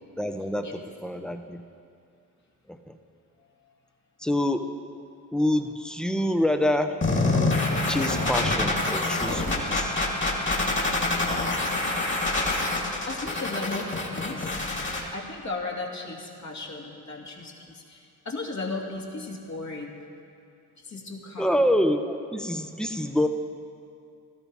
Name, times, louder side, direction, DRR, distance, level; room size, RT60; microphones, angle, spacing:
voice 1, 0.2-1.6 2.7-3.0 4.2-4.7 5.3-7.0 7.9-10.0 21.4-23.3, left 1 dB, ahead, 7 dB, 1.0 m, -26 dB
sound 1, 7.0-15.0, left 2 dB, 30° left, 2.9 m, -26 dB
voice 2, 13.1-14.7 15.1-20.0 20.8-21.7, left 3 dB, 45° left, 0 dB, 2.6 m, -36 dB
16.0 x 13.0 x 4.8 m, 2.4 s
supercardioid pair, 55°, 37 cm